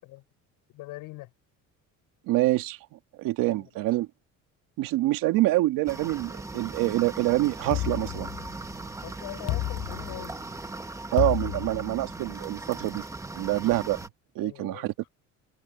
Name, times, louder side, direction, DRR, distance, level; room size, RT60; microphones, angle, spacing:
voice 1, 0.7-1.3 3.5-3.7 9.0-10.4 14.4-14.9, left 19 dB, 85° left, 6.0 m, -42 dB
voice 2, 2.3-4.1 4.8-8.3 11.1-13.1 13.3-14.0 14.4-14.9, right 17 dB, 85° right, 2.1 m, -26 dB
sound 1, 5.9-14.1, right 2 dB, 10° right, 1.0 m, -39 dB
sound 2, 7.7-8.8 9.5-10.5 11.2-12.3, left 15 dB, 45° left, 0.5 m, -31 dB
cardioid pair, 155°, 33 cm